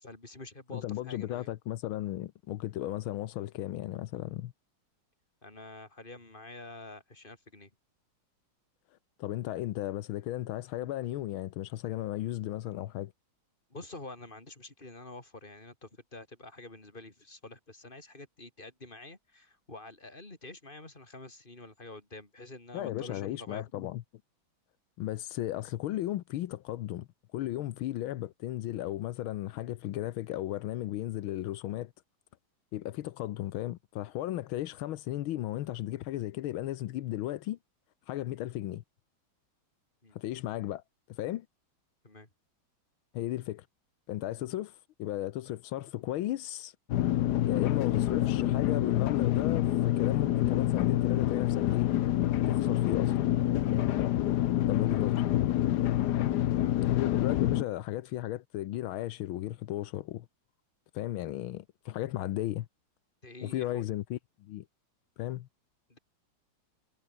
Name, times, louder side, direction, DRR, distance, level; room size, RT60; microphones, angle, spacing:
voice 1, 0.0-1.5 5.4-7.7 13.7-23.6 40.0-40.2 42.0-42.3 54.6-55.1 56.2-56.9 63.2-63.8 65.9-66.0, left 2 dB, 25° left, 4.1 m, -48 dB
voice 2, 0.7-4.5 9.2-13.1 22.7-24.0 25.0-31.9 32.7-37.6 38.1-38.8 40.1-40.8 41.1-41.5 43.1-43.6 44.1-46.7 47.4-51.9 52.4-53.1 54.7-55.2 56.9-60.3 60.9-62.7 63.4-64.6 65.2-65.5, left 14 dB, 85° left, 1.6 m, -35 dB
sound 1, 46.9-57.6, left 13 dB, 65° left, 1.1 m, -27 dB
omnidirectional pair, 2.2 m